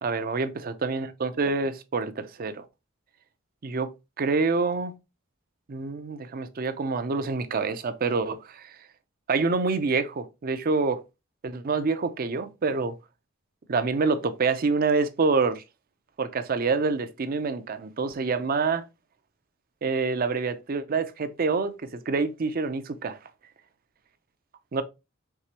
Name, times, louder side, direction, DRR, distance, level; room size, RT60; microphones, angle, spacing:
voice 1, 0.0-2.6 3.6-3.9 4.2-4.9 5.7-8.7 9.3-11.0 11.4-12.9 13.7-15.6 16.2-18.8 19.8-21.8 22.1-23.2 24.7-24.8, right 4 dB, 45° right, 0.5 m, -26 dB
4.7 x 3.3 x 2.8 m
head